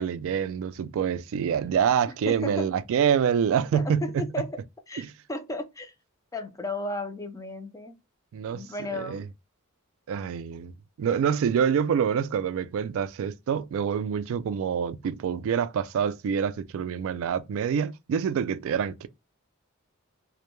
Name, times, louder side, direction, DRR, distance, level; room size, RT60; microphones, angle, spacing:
voice 1, 0.0-4.2 8.3-8.6 8.9-9.2 10.1-10.7 11.0-19.1, right 7 dB, 65° right, 0.3 m, -26 dB
voice 2, 2.3-2.7 3.7-4.6 4.9-5.9 6.3-8.0 8.5-9.2, left 2 dB, 15° left, 0.4 m, -34 dB
2.1 x 2.1 x 2.9 m
head